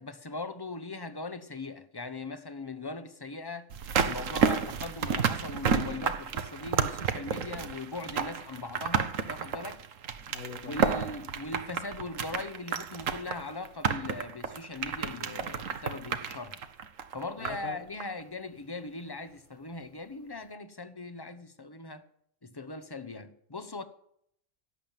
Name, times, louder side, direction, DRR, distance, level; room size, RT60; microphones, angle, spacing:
voice 1, 0.0-3.7 4.0-9.8 10.6-16.6 17.1-22.0 22.4-23.8, left 3 dB, 20° left, 0.8 m, -40 dB
sound 1, 3.7-17.7 18.0-18.1, right 7 dB, 75° right, 1.3 m, -31 dB
voice 2, 10.3-10.9 17.4-17.8, left 4 dB, 80° left, 2.1 m, -42 dB
17.0 x 7.4 x 9.1 m
omnidirectional pair, 1.4 m